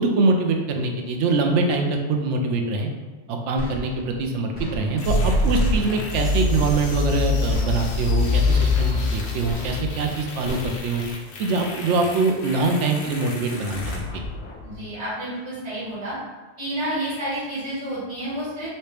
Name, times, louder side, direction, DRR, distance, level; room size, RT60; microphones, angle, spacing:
voice 1, 0.0-2.9 3.3-11.0 11.4-13.8 14.1-14.2, right 3 dB, 90° right, 3 dB, 0.9 m, -23 dB
sound 1, 3.6-4.3 4.5-5.2 5.5-6.2 6.5-7.2 7.5-8.2 8.5-9.2 9.5-10.2 10.4-11.1, right 1 dB, 10° right, 1.1 m, -36 dB
sound 2, 5.0-14.9, left 3 dB, 70° left, 0.8 m, -25 dB
voice 2, 14.6-16.2 16.6-18.7, right 1 dB, 75° right, -9 dB, 1.8 m, -30 dB
3.1 x 2.7 x 3.3 m, 1.3 s
omnidirectional pair, 1.2 m